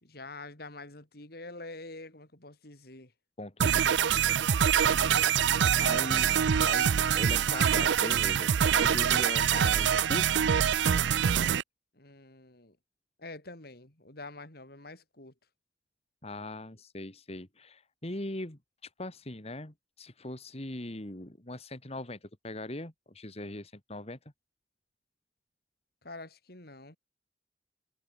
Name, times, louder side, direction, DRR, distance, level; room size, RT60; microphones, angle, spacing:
voice 1, 0.0-3.1 4.6-5.3 5.7-6.2 11.9-12.8 13.2-15.3 26.0-27.0, left 2 dB, 60° left, 4.5 m, -46 dB
voice 2, 3.4-3.8 5.8-10.4 16.2-24.2, left 1 dB, 35° left, 2.6 m, -40 dB
sound 1, 3.6-11.6, right 8 dB, 90° right, 0.5 m, -25 dB
head